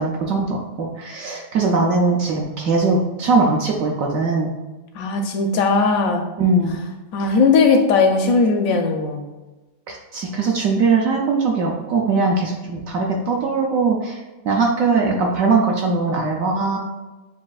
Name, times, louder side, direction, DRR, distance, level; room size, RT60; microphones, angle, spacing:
voice 1, 0.0-4.5 6.4-6.8 7.2-7.4 9.9-14.2 14.4-16.8, right 3 dB, 70° right, 0 dB, 0.8 m, -20 dB
voice 2, 5.0-6.2 7.1-9.2, left 4 dB, 70° left, 3 dB, 0.8 m, -18 dB
7.2 x 2.6 x 2.3 m, 1.1 s
omnidirectional pair, 1.9 m